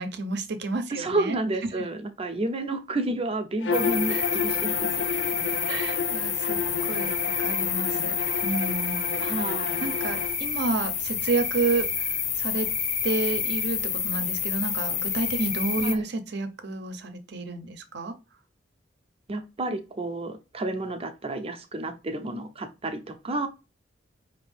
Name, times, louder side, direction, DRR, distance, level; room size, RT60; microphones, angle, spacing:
voice 1, 0.0-1.4 4.8-4.9 5.7-6.6 6.9-7.1 7.4-8.1 8.4-9.0 9.8-11.9 12.4-12.7 13.0-18.1, right 3 dB, 65° right, 0.8 m, -30 dB
voice 2, 0.9-5.6 9.2-9.9 15.8-16.1 19.3-23.5, right 2 dB, 30° right, 0.7 m, -31 dB
Bowed string instrument, 3.6-10.3, left 5 dB, 85° left, 0.6 m, -31 dB
sound 1, 3.7-16.0, left 7 dB, 40° left, 0.7 m, -29 dB
5.2 x 2.8 x 3.3 m
head